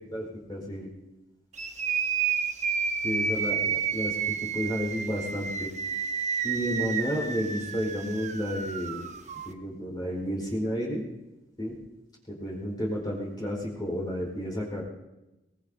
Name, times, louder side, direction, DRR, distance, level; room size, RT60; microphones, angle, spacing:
voice 1, 0.1-0.9 3.0-5.7 6.4-9.0 9.4-11.0 11.6-11.8 12.3-14.8, equal, 25° left, -4 dB, 4.7 m, -31 dB
sound 1, 1.5-9.5, right 6 dB, 40° right, 1.0 m, -30 dB
23.5 x 21.5 x 2.8 m, 1.0 s
head